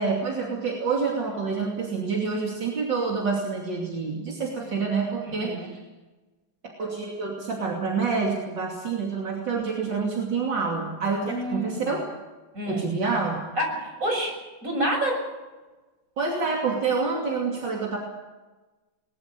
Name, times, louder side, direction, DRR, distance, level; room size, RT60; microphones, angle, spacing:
voice 1, 0.0-5.8 6.8-12.0 12.7-13.4 16.2-18.0, right 4 dB, 70° right, -1 dB, 3.5 m, -27 dB
voice 2, 11.2-11.9 12.5-12.8 13.6-14.3 14.6-15.3, equal, 45° right, 1 dB, 7.1 m, -28 dB
21.5 x 20.5 x 6.9 m, 1.2 s
omnidirectional pair, 2.0 m